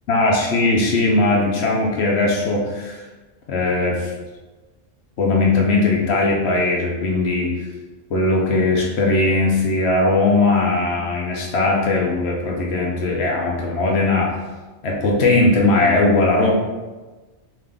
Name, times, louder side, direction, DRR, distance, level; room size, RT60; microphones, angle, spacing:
voice 1, 0.1-3.0 3.5-4.1 5.2-7.5 8.1-14.4 14.8-16.5, left 2 dB, 60° left, -1 dB, 0.8 m, -19 dB
3.7 x 2.7 x 3.3 m, 1.2 s
omnidirectional pair, 1.4 m